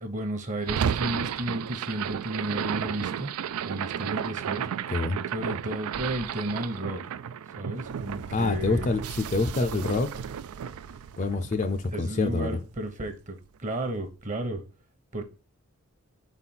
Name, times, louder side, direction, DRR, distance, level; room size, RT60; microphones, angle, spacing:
voice 1, 0.0-3.3 3.7-4.7 5.3-7.0 7.6-8.9 11.9-14.6 15.1-15.2, right 1 dB, 35° right, 1.0 m, -33 dB
sound 1, 0.6-12.8, right 8 dB, 80° right, 0.3 m, -33 dB
voice 2, 4.9-5.2 8.3-10.1 11.2-12.6, left 3 dB, 35° left, 0.4 m, -26 dB
4.9 x 4.1 x 5.7 m
head